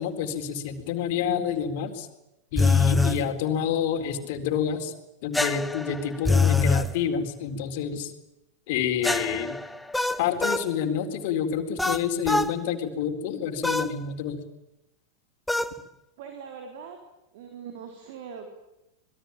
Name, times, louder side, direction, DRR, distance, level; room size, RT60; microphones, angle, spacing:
voice 1, 0.0-2.1 2.5-4.9 5.2-8.1 8.7-9.6 10.2-14.4, left 8 dB, 50° left, 6 dB, 4.1 m, -28 dB
sound 1, 2.6-3.2 5.3-6.9 9.0-10.7 11.8-12.5 13.6-13.9 15.5-15.8, left 3 dB, 5° left, 1.0 m, -24 dB
voice 2, 16.2-17.0 17.3-18.6, right 6 dB, 50° right, 4 dB, 4.1 m, -41 dB
27.0 x 22.0 x 9.1 m, 0.90 s
figure-of-eight pair, 90°, 0 cm